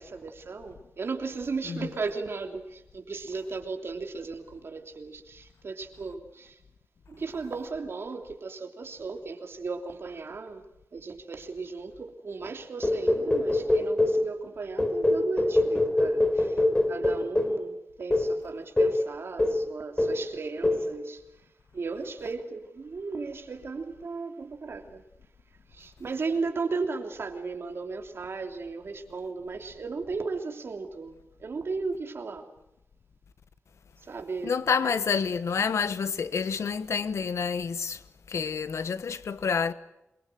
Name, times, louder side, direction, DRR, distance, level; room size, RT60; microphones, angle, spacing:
voice 1, 0.0-6.6 7.1-10.6 10.9-21.2 21.7-25.0 25.7-32.5 34.0-35.0, right 4 dB, 60° right, 3.2 m, -36 dB
sound 1, 12.8-14.3 14.8-17.6 18.1-18.3 18.8-19.0 19.4-19.7 20.0-20.3 20.6-20.9, left 1 dB, 20° left, 3.4 m, -24 dB
voice 2, 34.4-38.0 38.3-39.7, left 6 dB, 85° left, 1.2 m, -28 dB
27.5 x 23.5 x 7.8 m
wide cardioid pair, 130°, 5 cm